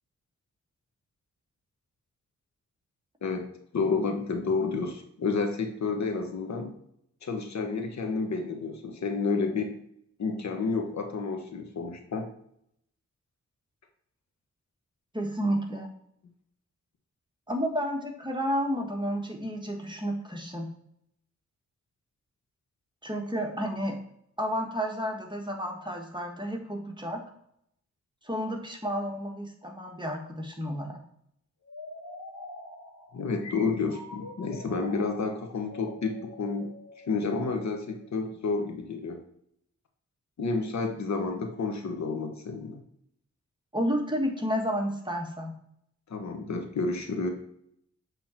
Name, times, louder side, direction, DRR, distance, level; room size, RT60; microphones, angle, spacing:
voice 1, 3.7-6.7 7.2-9.8 10.2-12.3 33.1-36.7 37.1-39.2 40.4-42.8 46.1-47.3, left 4 dB, 70° left, 5 dB, 1.2 m, -30 dB
voice 2, 15.1-15.9 17.5-20.7 23.0-24.0 24.4-27.2 28.2-31.0 43.7-45.5, equal, 15° right, 2 dB, 1.4 m, -31 dB
sound 1, 31.6-38.3, left 2 dB, 85° left, 2.3 m, -46 dB
7.5 x 3.8 x 4.3 m, 0.72 s
cardioid pair, 70°, 29 cm